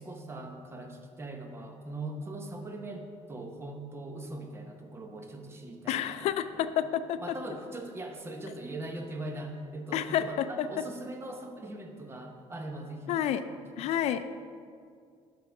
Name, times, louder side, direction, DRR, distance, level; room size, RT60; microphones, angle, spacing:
voice 1, 0.0-6.7 7.2-13.4 13.8-13.9, right 2 dB, 20° right, 3 dB, 1.0 m, -41 dB
voice 2, 5.9-7.2 9.9-10.7 13.1-13.5 13.8-14.3, left 10 dB, 65° left, 12 dB, 0.4 m, -29 dB
11.0 x 3.9 x 5.8 m, 2.2 s
cardioid pair, 120°, 12 cm